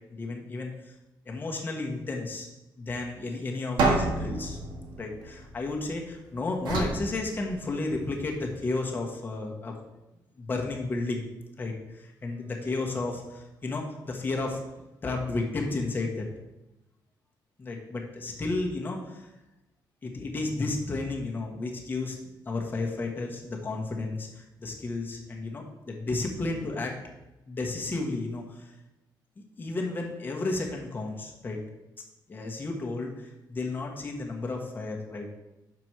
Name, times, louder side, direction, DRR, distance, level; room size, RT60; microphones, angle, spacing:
voice 1, 0.1-0.9 1.2-2.5 2.8-4.6 5.0-9.8 10.4-11.3 11.6-14.6 15.0-16.3 17.6-19.3 20.0-27.1 27.5-28.7 29.4-31.6 32.3-35.3, left 3 dB, 25° left, 0 dB, 1.3 m, -33 dB
sound 1, 3.8-6.0 6.6-8.0, right 2 dB, 90° right, 1.6 m, -29 dB
6.0 x 4.9 x 6.0 m, 0.97 s
cardioid pair, 150°, 8 cm